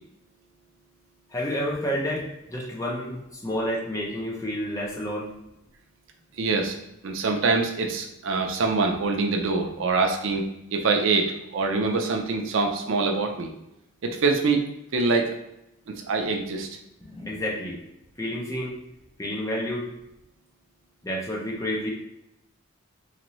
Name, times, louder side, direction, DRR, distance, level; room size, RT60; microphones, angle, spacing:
voice 1, 1.3-5.3 17.0-17.8 18.2-18.8 19.2-19.9 21.0-21.9, equal, 15° left, -2 dB, 0.7 m, -30 dB
voice 2, 6.4-6.8 7.0-13.5 14.0-14.7 14.9-15.4 15.9-16.7, right 3 dB, 70° right, 4 dB, 0.5 m, -24 dB
4.0 x 2.6 x 3.0 m, 0.85 s
head